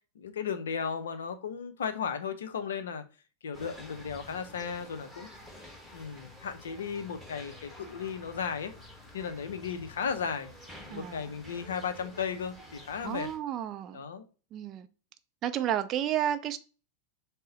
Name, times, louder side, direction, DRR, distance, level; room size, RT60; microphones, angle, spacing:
voice 1, 0.2-3.0 3.4-5.3 5.9-8.7 9.1-10.5 10.9-13.3 13.9-14.2, left 6 dB, 65° left, 0.5 m, -35 dB
sound 1, 3.5-13.4, left 1 dB, ahead, 1.1 m, -50 dB
voice 2, 10.9-11.3 13.0-14.0 14.5-14.9 15.4-16.6, right 11 dB, 35° right, 0.3 m, -31 dB
3.8 x 2.0 x 3.8 m
figure-of-eight pair, 90°, 0 cm